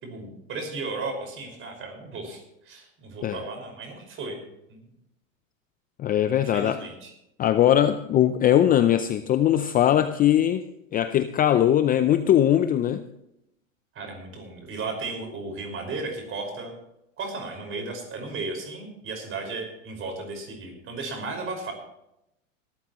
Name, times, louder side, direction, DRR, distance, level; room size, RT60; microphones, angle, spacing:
voice 1, 0.0-4.4 4.7-4.9 6.3-7.1 13.9-16.7 17.2-21.7, right 3 dB, 30° right, 4 dB, 5.5 m, -35 dB
voice 2, 6.0-6.8 7.4-10.6 10.9-13.0, left 11 dB, 20° left, 10 dB, 0.5 m, -20 dB
19.0 x 13.0 x 3.1 m, 0.83 s
hypercardioid pair, 120°, 40 cm